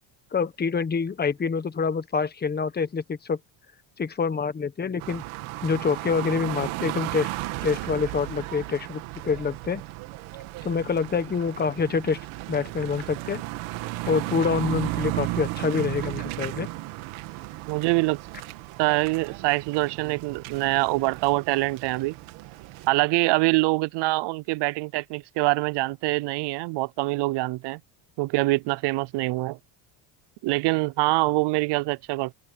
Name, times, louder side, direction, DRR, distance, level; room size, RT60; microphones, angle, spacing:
voice 1, 0.3-3.4 4.0-5.2 5.6-7.3 7.6-9.8 10.6-12.2 12.5-13.4 14.0-16.7, left 5 dB, 20° left, 1.3 m, -26 dB
sound 1, 5.0-22.9, right 18 dB, 90° right, 2.3 m, -35 dB
voice 2, 17.7-18.2 18.8-22.1 22.9-27.8 28.2-29.6 30.4-32.3, right 22 dB, 60° right, 0.6 m, -24 dB
open air
cardioid pair, 135°, 47 cm